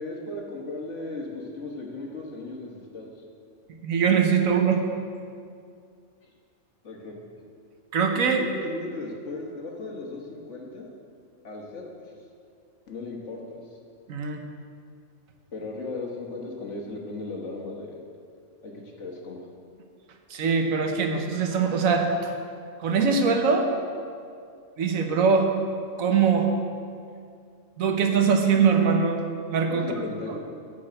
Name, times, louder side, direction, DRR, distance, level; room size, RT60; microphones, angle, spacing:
voice 1, 0.0-3.2 6.8-7.1 8.4-10.9 11.4-12.2 12.9-13.6 15.5-18.1 18.6-19.5 29.7-30.4, left 2 dB, 60° left, -1 dB, 1.6 m, -36 dB
voice 2, 3.8-4.9 7.9-8.4 14.1-14.4 20.3-22.3 22.8-23.7 24.8-25.5 26.0-26.5 27.8-29.2 29.5-29.9 30.3-30.4, right 5 dB, 85° right, 4 dB, 1.3 m, -22 dB
9.7 x 4.6 x 7.6 m, 2.3 s
omnidirectional pair, 1.4 m